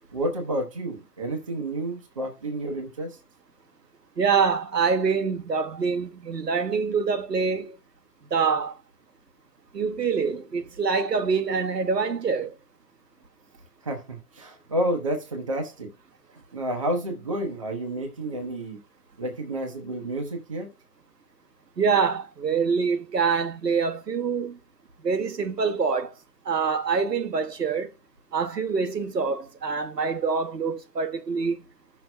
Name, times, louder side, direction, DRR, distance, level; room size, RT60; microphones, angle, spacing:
voice 1, 0.1-3.2 13.8-15.9 16.5-18.8 19.2-20.7, right 1 dB, 20° right, 0.8 m, -30 dB
voice 2, 4.2-7.8 8.3-8.8 9.7-12.5 21.8-24.6 25.0-26.1 26.4-27.9 28.3-31.6, right 5 dB, 80° right, 1.1 m, -25 dB
14.0 x 6.1 x 2.2 m
hypercardioid pair, 160°, 48 cm